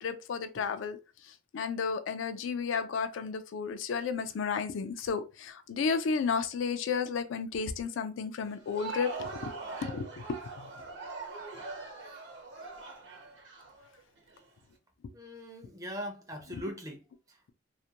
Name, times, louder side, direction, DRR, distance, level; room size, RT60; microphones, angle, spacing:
voice 1, 0.0-1.0 1.2-9.5 9.8-10.4 16.5-16.6, left 5 dB, 80° left, 0.3 m, -33 dB
Crowd, 8.5-14.4, right 3 dB, 70° right, 0.8 m, -42 dB
voice 2, 15.1-17.5, equal, 15° right, 0.4 m, -41 dB
2.4 x 2.1 x 2.8 m
head